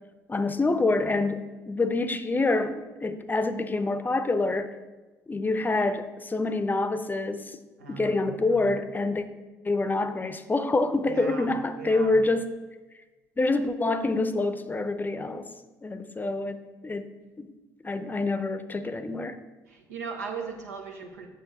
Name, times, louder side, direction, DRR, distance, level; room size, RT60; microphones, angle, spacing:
voice 1, 0.3-4.7 5.3-7.6 7.9-9.2 9.6-12.5 13.4-15.5 15.8-17.1 17.4-17.5 17.8-19.4, left 2 dB, 20° left, 10 dB, 0.7 m, -26 dB
voice 2, 7.8-8.2 8.5-8.7 11.1-11.5 11.8-12.1 19.7-21.3, right 5 dB, 80° right, 2 dB, 1.1 m, -38 dB
8.9 x 6.6 x 4.1 m, 1.2 s
figure-of-eight pair, 50°, 9 cm